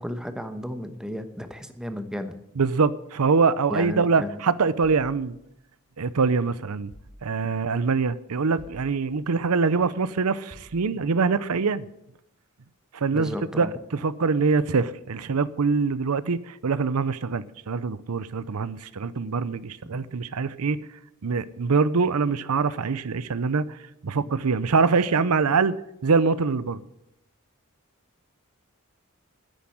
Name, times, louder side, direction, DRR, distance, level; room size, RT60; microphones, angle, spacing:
voice 1, 0.0-2.4 3.7-4.4 13.1-13.7 24.2-24.3, left 1 dB, 5° right, 1.1 m, -33 dB
voice 2, 2.6-5.4 6.0-6.9 7.2-11.8 12.9-13.7 13.9-20.8 21.2-23.7 24.0-25.7 26.0-26.8, right 4 dB, 80° right, 0.6 m, -24 dB
sound 1, 6.9-7.7 8.6-9.5 10.5-11.3, equal, 85° left, 3.8 m, -51 dB
10.0 x 9.7 x 9.9 m
head